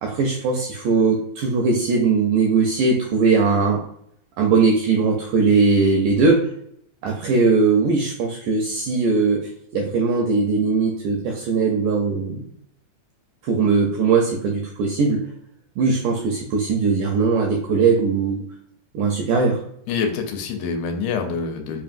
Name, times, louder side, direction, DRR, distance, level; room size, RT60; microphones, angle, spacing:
voice 1, 0.0-3.8 4.4-6.4 7.0-9.4 9.7-12.4 13.4-15.2 15.8-18.4 18.9-19.6, right 4 dB, 85° right, 0 dB, 1.8 m, -19 dB
voice 2, 19.9-21.8, left 5 dB, 80° left, 4 dB, 2.3 m, -26 dB
5.6 x 2.5 x 2.5 m, 0.72 s
omnidirectional pair, 4.3 m